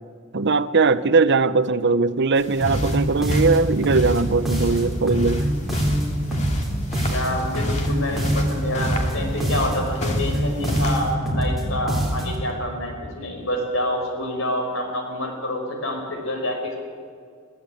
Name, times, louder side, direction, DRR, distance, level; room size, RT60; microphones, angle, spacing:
voice 1, 0.3-5.4, right 4 dB, 55° right, 13 dB, 0.7 m, -20 dB
sound 1, 2.4-11.2, left 1 dB, 35° left, 2.5 m, -36 dB
sound 2, 2.6-12.5, equal, ahead, 3.9 m, -24 dB
voice 2, 7.0-16.7, left 1 dB, 70° left, 3 dB, 5.0 m, -27 dB
22.5 x 14.5 x 8.5 m, 2.2 s
head